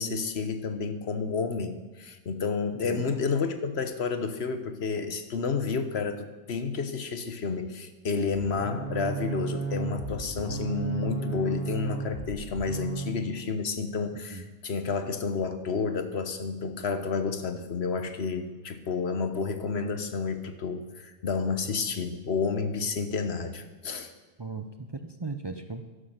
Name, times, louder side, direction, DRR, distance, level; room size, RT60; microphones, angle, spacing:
voice 1, 0.0-24.1, left 5 dB, 75° left, 9 dB, 1.3 m, -30 dB
voice 2, 2.7-3.2 14.3-14.4 24.4-25.8, right 3 dB, 30° right, 6 dB, 0.6 m, -37 dB
sound 1, 8.3-13.2, right 4 dB, 65° right, 1.6 m, -34 dB
11.5 x 11.5 x 6.6 m, 1.2 s
omnidirectional pair, 1.1 m